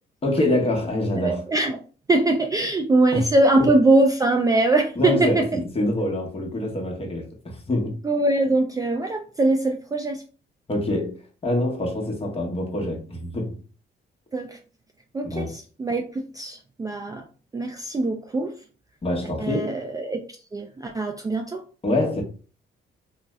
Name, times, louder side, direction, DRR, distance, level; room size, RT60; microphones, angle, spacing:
voice 1, 0.2-1.4 3.1-3.3 3.6-3.7 5.0-7.9 10.7-11.1 11.4-13.6 15.2-15.5 19.0-19.7 21.8-22.2, left 1 dB, 30° left, 0.9 m, -25 dB
voice 2, 1.2-1.8 2.1-5.6 8.0-10.2 14.3-14.6 15.1-17.2 17.5-18.6 19.4-20.2 20.5-21.6, right 2 dB, 20° right, 0.3 m, -22 dB
2.7 x 2.1 x 3.4 m
cardioid pair, 90°, 20 cm